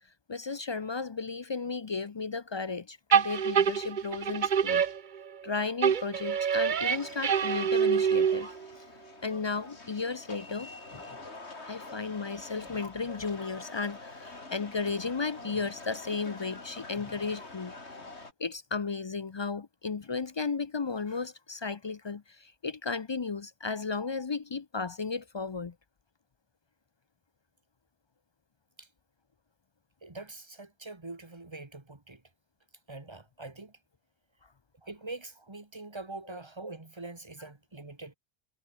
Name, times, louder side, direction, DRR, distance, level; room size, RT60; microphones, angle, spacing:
voice 1, 0.3-4.8 5.4-8.5 9.2-11.0 11.6-17.7 18.4-25.7, left 4 dB, 40° left, 0.4 m, -34 dB
sound 1, 3.1-5.5 5.8-8.7, right 7 dB, 45° right, 0.8 m, -26 dB
sound 2, 6.7-18.3, left 2 dB, 70° left, 3.8 m, -46 dB
voice 2, 30.0-32.2 32.9-33.8 34.8-38.1, right 2 dB, 25° right, 1.9 m, -44 dB
omnidirectional pair, 1.2 m